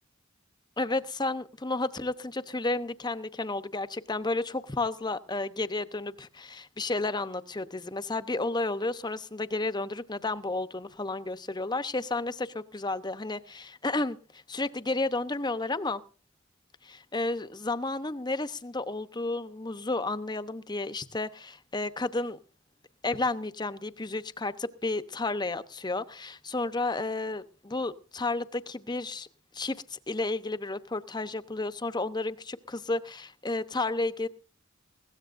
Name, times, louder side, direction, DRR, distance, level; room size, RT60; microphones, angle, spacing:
voice 1, 0.8-16.0 16.8-22.4 23.0-29.3 29.5-34.3, left 2 dB, 20° left, 12 dB, 0.9 m, -32 dB
21.0 x 17.0 x 2.6 m, 0.38 s
head